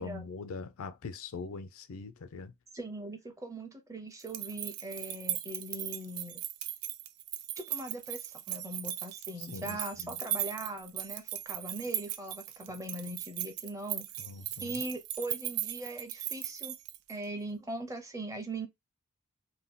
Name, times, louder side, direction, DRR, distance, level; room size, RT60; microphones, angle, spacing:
voice 1, 0.0-2.5 9.4-10.2 14.2-14.8, left 4 dB, 65° left, 0.4 m, -42 dB
voice 2, 2.7-6.4 7.6-14.1 14.6-16.8 17.1-18.7, right 1 dB, 15° right, 0.5 m, -40 dB
sound 1, 4.2-17.2, right 12 dB, 85° right, 0.4 m, -38 dB
2.7 x 2.2 x 3.6 m
head